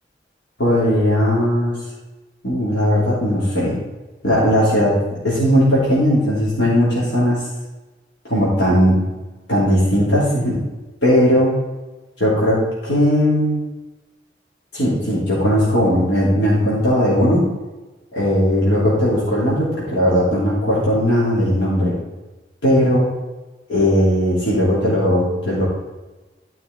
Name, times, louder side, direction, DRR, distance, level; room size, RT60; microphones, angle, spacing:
voice 1, 0.6-1.8 2.4-3.8 4.2-5.0 5.2-7.5 8.3-9.0 9.5-10.6 11.0-11.6 12.2-13.6 14.7-17.4 18.1-21.9 22.6-23.1 23.7-25.7, equal, 85° left, -8 dB, 3.2 m, -17 dB
12.5 x 5.8 x 4.1 m, 1.2 s
head